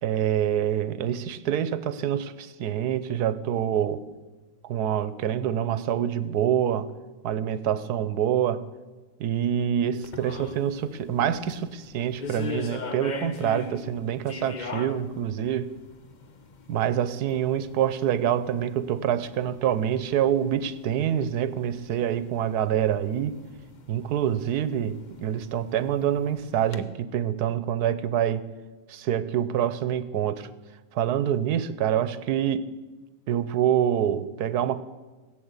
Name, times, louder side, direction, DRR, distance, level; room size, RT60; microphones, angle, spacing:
voice 1, 0.0-4.0 4.6-6.9 7.2-8.6 9.2-15.7 16.7-23.4 23.9-28.4 28.9-30.5 30.9-32.7 33.3-34.8, right 10 dB, 80° right, 14 dB, 1.3 m, -26 dB
sound 1, 10.0-26.8, left 4 dB, 40° left, 0.7 m, -42 dB
17.5 x 8.3 x 8.1 m, 1.2 s
omnidirectional pair, 1.7 m